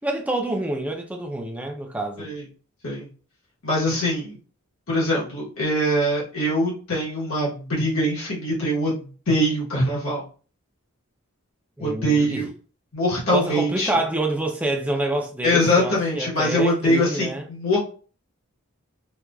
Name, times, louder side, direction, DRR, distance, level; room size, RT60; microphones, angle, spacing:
voice 1, 0.0-2.3 11.8-12.4 13.3-17.4, right 1 dB, 5° right, 0.5 m, -27 dB
voice 2, 3.6-4.4 4.9-10.2 11.8-12.5 12.9-13.9 15.4-17.8, equal, 75° left, 1.3 m, -23 dB
4.5 x 2.5 x 2.3 m
head